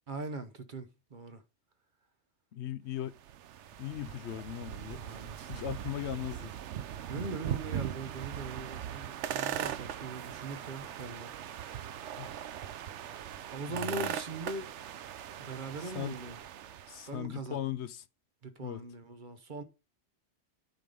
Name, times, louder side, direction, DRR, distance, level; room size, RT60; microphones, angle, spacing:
voice 1, 0.1-1.4 5.0-5.7 7.1-11.8 13.5-14.7 15.4-16.4 17.1-17.6 18.4-19.6, right 3 dB, 45° right, 1.0 m, -41 dB
voice 2, 2.5-3.2 3.8-5.0 5.5-6.5 12.2-12.3 13.7-14.1 15.8-16.2 16.9-18.1 18.6-18.8, left 11 dB, 70° left, 0.9 m, -38 dB
sound 1, 3.1-17.1, right 10 dB, 80° right, 1.0 m, -40 dB
9.3 x 5.1 x 5.3 m
omnidirectional pair, 1.2 m